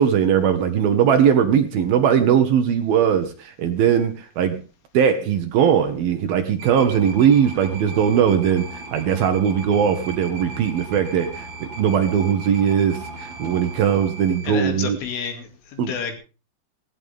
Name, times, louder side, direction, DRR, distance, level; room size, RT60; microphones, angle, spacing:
voice 1, 0.0-4.6 4.9-15.0 15.8-15.9, right 8 dB, 65° right, 7 dB, 2.5 m, -19 dB
sound 1, 6.6-14.5, right 2 dB, 50° right, 5.9 m, -37 dB
voice 2, 14.5-16.1, left 6 dB, 75° left, 6 dB, 5.2 m, -30 dB
16.5 x 16.5 x 3.6 m, 0.33 s
omnidirectional pair, 5.7 m